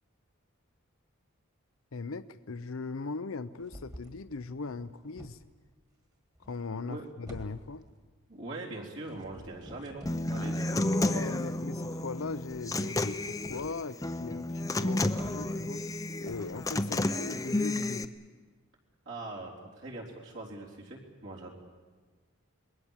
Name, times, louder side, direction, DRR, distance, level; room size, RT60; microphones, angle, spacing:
voice 1, 1.9-5.4 6.5-7.8 11.1-15.8 16.2-18.1, left 4 dB, 75° left, 12 dB, 0.7 m, -39 dB
sound 1, 3.6-4.2 4.7-5.8 6.3-6.9 7.3-8.0 9.0-10.3 13.4-13.8 14.1-14.2 14.5-14.6 14.8-15.8 16.2-17.5, equal, 15° right, 2.0 m, -49 dB
voice 2, 8.3-11.4 19.1-21.5, right 2 dB, 60° right, -3 dB, 3.9 m, -42 dB
Human voice / Acoustic guitar, 10.1-18.0, left 2 dB, 15° left, 0.7 m, -31 dB
27.5 x 21.0 x 7.4 m, 1.4 s
head